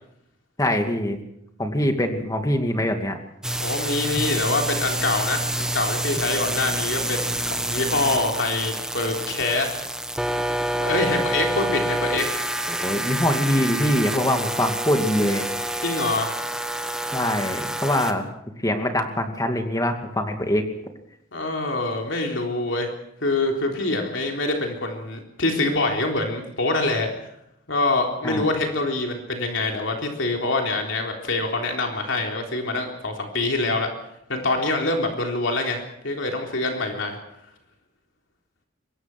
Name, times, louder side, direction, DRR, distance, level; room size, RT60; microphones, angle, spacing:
voice 1, 0.6-1.2 1.6-3.2 12.7-15.4 17.1-18.2 18.6-20.6 28.2-28.5, left 1 dB, 20° left, 5 dB, 2.4 m, -23 dB
sound 1, 3.4-18.1, right 1 dB, 5° right, 1.4 m, -27 dB
voice 2, 3.6-9.7 10.8-12.3 15.8-16.3 21.3-22.9 23.2-27.3 27.7-33.9 34.3-37.2, left 2 dB, 70° left, 2 dB, 3.7 m, -25 dB
24.0 x 21.0 x 6.1 m, 0.78 s
head